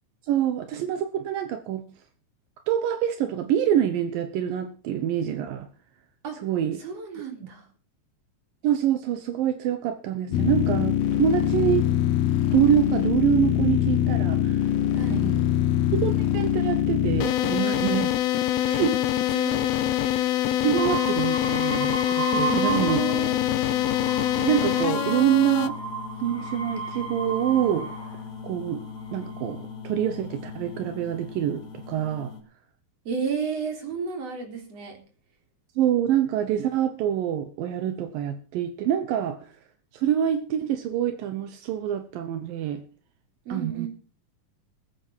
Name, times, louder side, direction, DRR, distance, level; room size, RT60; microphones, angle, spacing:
voice 1, 0.2-1.8 2.7-5.7 6.4-6.8 8.6-11.9 12.5-14.7 15.1-15.4 15.9-18.2 18.7-19.0 19.3-19.5 20.6-23.0 24.4-25.8 26.2-27.9 28.4-28.8 29.1-32.3 35.8-39.5 39.9-42.8 43.5-43.9, right 10 dB, 80° right, 9 dB, 2.8 m, -26 dB
voice 2, 6.8-7.7 14.9-15.2 19.3-19.6 22.3-23.4 33.1-34.9 43.5-43.9, right 6 dB, 45° right, 4 dB, 4.4 m, -32 dB
sound 1, 10.3-25.7, left 11 dB, 85° left, 1.4 m, -24 dB
sound 2, 20.8-23.3 23.7-28.2 29.0-29.5, right 5 dB, 10° left, 4.7 m, -33 dB
sound 3, 22.9-32.4, left 6 dB, 50° left, 5.3 m, -39 dB
21.0 x 9.0 x 4.5 m, 0.36 s
omnidirectional pair, 4.0 m